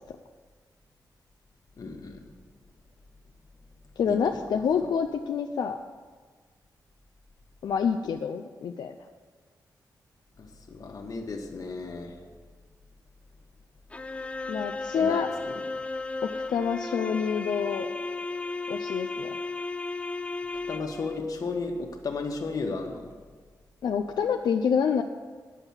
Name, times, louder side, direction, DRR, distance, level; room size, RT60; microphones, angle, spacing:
voice 1, 1.8-2.2 4.1-4.5 10.4-12.2 14.9-15.2 15.4-15.6 20.7-23.1, left 3 dB, 55° left, 3 dB, 1.4 m, -34 dB
voice 2, 4.0-5.8 7.6-8.9 14.5-15.3 16.2-17.9 18.7-19.3 23.8-25.0, left 6 dB, 85° left, 5 dB, 0.5 m, -27 dB
sound 1, 13.9-21.2, left 3 dB, 15° left, 0.3 m, -34 dB
10.0 x 7.2 x 7.2 m, 1.5 s
wide cardioid pair, 150°, 7 cm